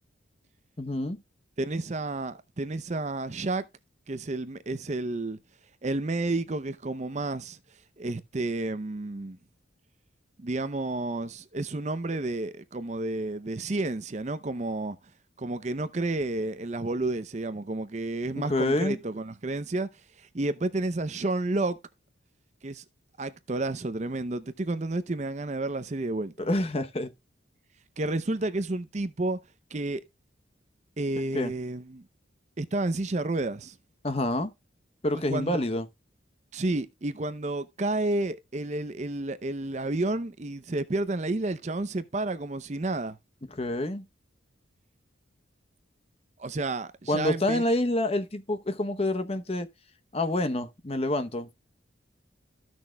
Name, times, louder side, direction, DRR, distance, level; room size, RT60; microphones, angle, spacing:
voice 1, 0.8-1.2 18.3-19.0 26.4-27.1 31.3-31.5 34.0-34.5 35.0-35.9 43.5-44.0 47.1-49.7 50.1-51.5, left 1 dB, 30° left, 0.8 m, -27 dB
voice 2, 1.6-3.7 4.1-5.4 5.8-7.6 8.0-9.4 10.4-15.0 15.4-19.9 20.2-21.8 22.6-22.8 23.2-26.5 28.0-29.4 29.7-30.0 31.0-32.0 32.6-33.8 35.3-35.6 36.5-43.2 46.4-47.6, right 2 dB, 35° right, 0.6 m, -31 dB
14.0 x 6.3 x 2.3 m
head